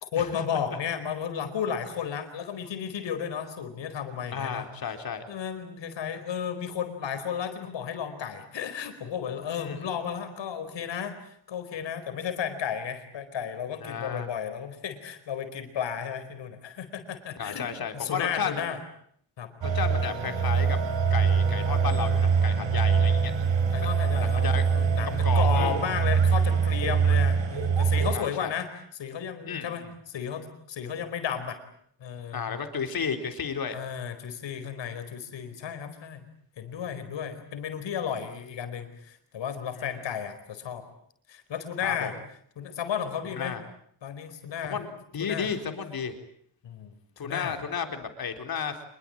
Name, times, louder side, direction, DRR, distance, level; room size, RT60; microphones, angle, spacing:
voice 1, 0.0-4.6 5.3-18.8 19.4-19.5 23.7-31.6 32.0-32.6 33.7-36.2 36.6-40.9 41.3-42.1 42.6-43.6 44.0-44.8 45.2-45.5 46.6-46.9 47.2-47.6, left 8 dB, 75° left, 8 dB, 4.7 m, -33 dB
voice 2, 4.3-5.2 9.6-9.8 13.8-14.3 17.4-18.7 19.6-20.8 21.1-23.3 24.1-24.6 25.2-25.9 28.1-28.6 29.5-29.9 32.3-33.8 39.8-39.9 41.8-42.1 43.2-43.6 44.6-46.1 47.2-48.8, left 6 dB, 55° left, 7 dB, 4.1 m, -33 dB
sound 1, 19.6-28.2, right 6 dB, 75° right, 4.2 m, -23 dB
26.0 x 22.5 x 8.9 m, 0.65 s
cardioid pair, 105°, 44 cm